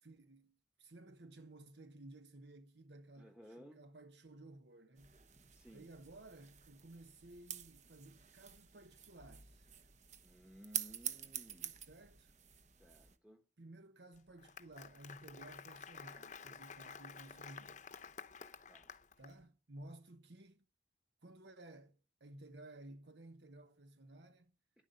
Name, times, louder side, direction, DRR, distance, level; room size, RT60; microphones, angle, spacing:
voice 1, 0.0-5.2 5.7-9.7 11.8-12.3 13.6-17.9 19.2-20.6 21.2-24.5, right 1 dB, 70° right, 1.1 m, -56 dB
voice 2, 3.2-3.9 5.5-5.9 10.2-11.8 12.8-13.4 18.7-18.9, equal, 5° right, 1.2 m, -58 dB
sound 1, 5.0-13.1, right 10 dB, 40° right, 1.1 m, -48 dB
Applause, 14.2-19.3, left 6 dB, 40° left, 0.8 m, -52 dB
11.5 x 11.0 x 5.3 m
head